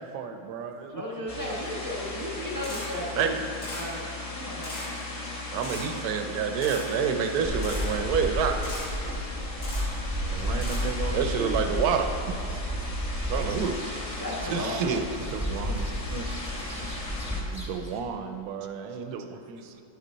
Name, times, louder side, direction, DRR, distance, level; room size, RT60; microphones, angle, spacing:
voice 1, 0.0-1.5 10.3-11.7 12.5-12.7 15.2-16.3 17.5-19.7, right 5 dB, 85° right, 7 dB, 1.4 m, -36 dB
voice 2, 0.9-4.7 14.2-14.9, left 1 dB, 10° left, -5 dB, 1.2 m, -35 dB
sound 1, 1.3-17.4, left 2 dB, 25° left, 0.8 m, -37 dB
Camera, 2.6-2.9 3.6-3.9 4.6-4.9 5.6-5.9 6.6-6.8 7.6-7.9 8.6-8.9 9.6-9.8 10.6-10.8, left 1 dB, 65° left, 2.9 m, -38 dB
voice 3, 5.5-8.6 11.1-12.1 13.3-13.8 14.5-15.0, right 6 dB, 65° right, 6 dB, 1.0 m, -27 dB
sound 2, 7.4-18.0, equal, 5° right, 1.0 m, -33 dB
9.8 x 8.3 x 4.0 m, 2.5 s
omnidirectional pair, 2.0 m